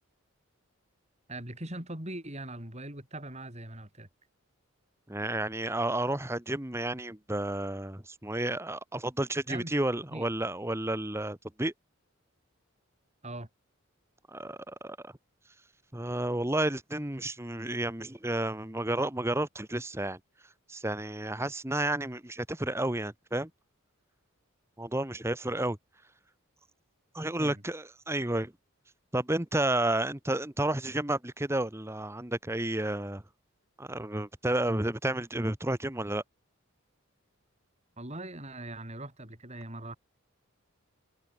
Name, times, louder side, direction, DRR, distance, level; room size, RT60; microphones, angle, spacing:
voice 1, 1.3-4.1 9.5-9.7 10.1-10.2 13.2-13.5 27.4-27.6 38.0-40.0, right 1 dB, 30° right, 5.8 m, -41 dB
voice 2, 5.1-11.7 14.3-15.1 15.9-20.2 20.7-23.5 24.8-25.8 27.1-28.5 29.1-33.2 33.8-36.2, right 1 dB, 10° right, 1.2 m, -31 dB
head